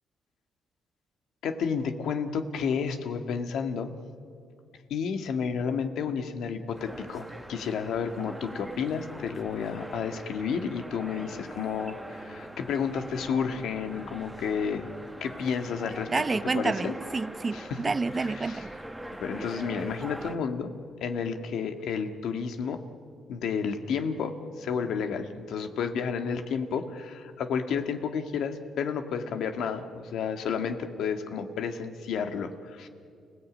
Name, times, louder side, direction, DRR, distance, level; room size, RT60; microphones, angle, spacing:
voice 1, 1.4-3.9 4.9-14.9 15.2-16.1 16.5-16.9 17.5-17.8 18.4-18.6 19.2-20.7 21.0-22.8 23.3-32.9, left 6 dB, 75° left, 1.8 m, -31 dB
sound 1, 6.7-20.4, right 1 dB, 5° right, 1.4 m, -42 dB
voice 2, 16.1-18.7, right 4 dB, 30° right, 0.5 m, -29 dB
29.5 x 17.5 x 8.9 m
cardioid pair, 90°, 0 cm